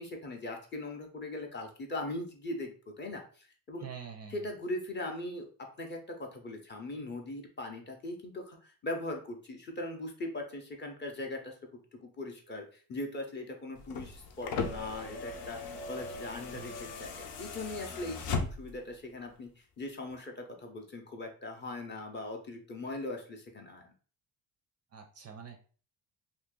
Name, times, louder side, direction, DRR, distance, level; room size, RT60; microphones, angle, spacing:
voice 1, 0.0-3.9 4.3-5.5 5.8-11.5 11.9-23.9, left 2 dB, 25° left, 2 dB, 0.6 m, -40 dB
voice 2, 3.8-4.3 16.5-16.8 24.9-25.6, right 7 dB, 40° right, 4 dB, 0.4 m, -45 dB
sound 1, 13.8-18.9 20.1-20.2, left 4 dB, 75° left, 0.7 m, -38 dB
2.7 x 2.6 x 3.6 m, 0.40 s
cardioid pair, 150°, 41 cm